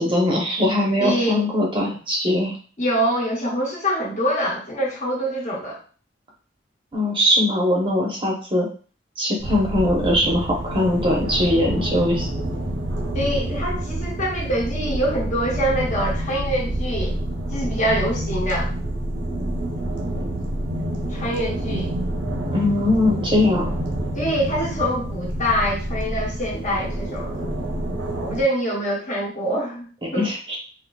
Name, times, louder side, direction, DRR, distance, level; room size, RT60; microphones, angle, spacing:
voice 1, 0.0-2.5 6.9-8.7 9.2-12.3 22.5-23.8 30.1-30.6, left 1 dB, 25° right, -2 dB, 0.8 m, -21 dB
voice 2, 1.0-1.4 2.8-5.8 13.1-17.2 17.5-18.7 21.1-21.9 24.1-27.5 28.2-30.3, equal, 40° left, -4 dB, 1.0 m, -25 dB
sound 1, 9.4-28.4, right 1 dB, 85° right, 0.8 m, -28 dB
4.1 x 2.5 x 2.3 m, 0.39 s
head